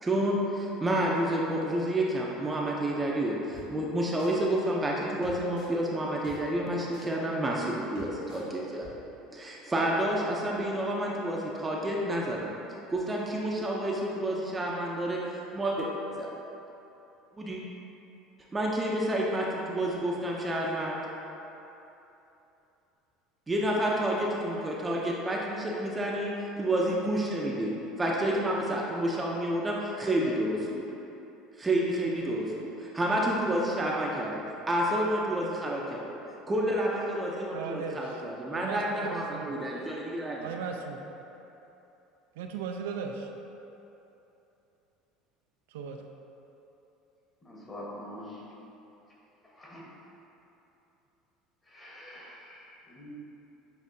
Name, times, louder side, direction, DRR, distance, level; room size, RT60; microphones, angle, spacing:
voice 1, 0.0-8.9 9.3-12.5 12.9-15.2 15.5-15.9 16.2-16.3 17.3-17.6 18.5-21.0 23.5-27.7 28.0-30.8 31.6-34.3 34.7-36.2 36.5-40.5, right 1 dB, 20° right, -3 dB, 0.5 m, -29 dB
sound 1, 3.5-3.6 4.2-4.3 5.2-5.7 6.2-6.4 6.9-7.0 7.6-7.7 8.0-8.4 8.8-8.9, left 3 dB, 80° left, 1.3 m, -47 dB
voice 2, 37.5-38.0 38.5-39.5 40.4-41.0 42.4-43.3 45.7-46.0, right 6 dB, 90° right, 3 dB, 0.3 m, -37 dB
voice 3, 47.4-48.5 49.4-49.9 51.6-53.1, left 1 dB, 20° left, -5 dB, 1.2 m, -45 dB
7.2 x 2.7 x 2.6 m, 3.0 s
supercardioid pair, 100°, 0 cm